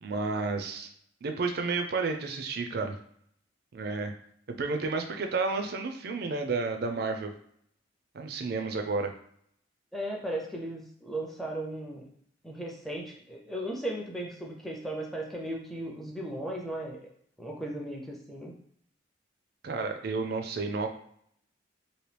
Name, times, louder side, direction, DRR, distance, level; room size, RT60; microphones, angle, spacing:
voice 1, 0.0-0.9 1.2-3.0 3.7-4.1 4.5-7.3 8.1-9.1 19.6-20.9, right 4 dB, 55° right, 5 dB, 0.4 m, -31 dB
voice 2, 9.9-12.0 12.4-17.1 17.4-18.5, right 1 dB, ahead, -1 dB, 0.5 m, -36 dB
3.0 x 2.7 x 3.3 m, 0.66 s
head